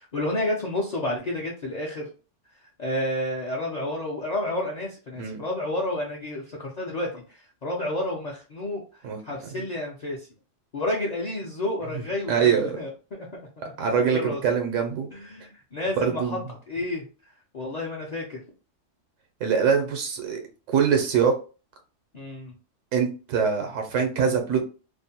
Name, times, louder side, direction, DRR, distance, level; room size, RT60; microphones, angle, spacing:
voice 1, 0.1-2.1 2.6-10.3 10.7-13.3 13.6-13.7 14.0-14.4 15.1-16.4 16.7-18.4 22.1-22.5, left 1 dB, 50° left, -3 dB, 0.5 m, -30 dB
voice 2, 12.3-12.8 13.8-15.1 16.0-16.4 19.4-20.4 20.7-21.3 22.9-24.6, right 6 dB, 85° right, 4 dB, 1.0 m, -23 dB
2.5 x 2.1 x 2.7 m, 0.35 s
omnidirectional pair, 1.3 m